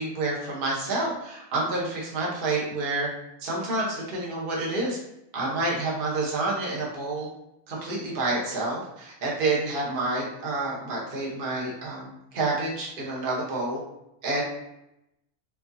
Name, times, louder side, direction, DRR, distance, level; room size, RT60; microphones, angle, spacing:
voice 1, 0.0-3.1 3.4-5.0 5.3-7.3 7.7-13.8 14.2-14.4, right 2 dB, 40° right, -4 dB, 1.0 m, -28 dB
4.5 x 2.7 x 2.6 m, 0.84 s
omnidirectional pair, 1.7 m